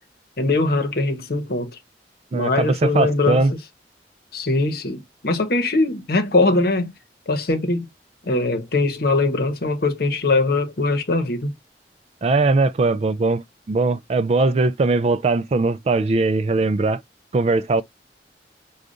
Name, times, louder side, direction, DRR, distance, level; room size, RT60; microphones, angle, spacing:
voice 1, 0.4-1.7 2.3-3.6 4.3-6.9 7.3-7.9 8.2-11.5, left 2 dB, 60° left, 0.9 m, -21 dB
voice 2, 2.3-3.5 12.2-17.0 17.3-17.8, right 3 dB, 35° right, 0.3 m, -20 dB
4.9 x 2.3 x 2.5 m
head